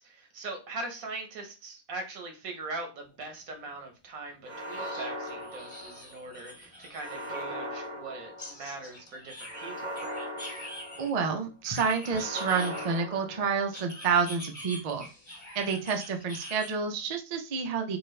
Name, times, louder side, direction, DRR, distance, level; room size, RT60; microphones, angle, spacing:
voice 1, 0.0-10.0, right 2 dB, 85° right, 4 dB, 1.4 m, -41 dB
sound 1, 3.2-3.3 3.7-3.8 4.7-7.3 8.4-11.1 11.6-13.2 13.7-16.7, left 1 dB, 30° left, 1.4 m, -45 dB
sound 2, 4.4-6.3 7.0-8.8 9.5-11.4 12.0-13.9, equal, 35° right, 0.8 m, -39 dB
voice 2, 11.0-15.1 15.5-18.0, right 5 dB, 55° right, 4 dB, 0.4 m, -29 dB
4.4 x 2.4 x 3.2 m, 0.31 s
omnidirectional pair, 1.4 m